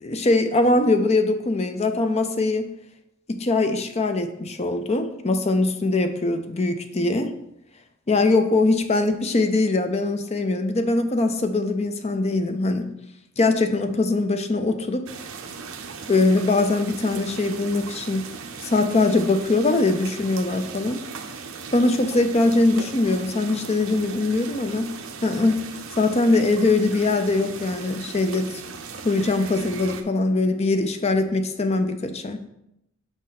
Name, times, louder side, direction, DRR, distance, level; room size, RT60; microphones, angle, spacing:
voice 1, 0.0-2.7 3.3-7.3 8.1-12.9 13.4-15.1 16.1-18.3 18.6-21.0 21.7-24.9 25.2-25.7 26.0-28.6 29.0-32.4, left 2 dB, 30° left, 8 dB, 0.5 m, -22 dB
sound 1, 15.1-30.0, right 5 dB, 80° right, 0.7 m, -38 dB
6.2 x 5.2 x 4.1 m, 0.80 s
head